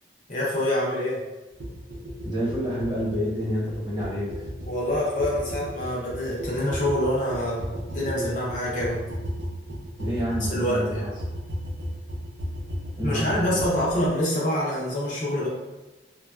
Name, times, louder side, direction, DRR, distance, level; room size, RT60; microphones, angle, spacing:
voice 1, 0.3-1.2 4.7-9.1 10.4-11.1 13.0-15.5, left 1 dB, 45° left, -5 dB, 0.7 m, -26 dB
sound 1, 1.6-14.1, equal, 75° right, 0.6 m, -35 dB
voice 2, 2.2-4.4 10.0-11.1 12.9-13.6, equal, 25° right, -7 dB, 1.1 m, -28 dB
3.2 x 2.2 x 2.3 m, 1.1 s
head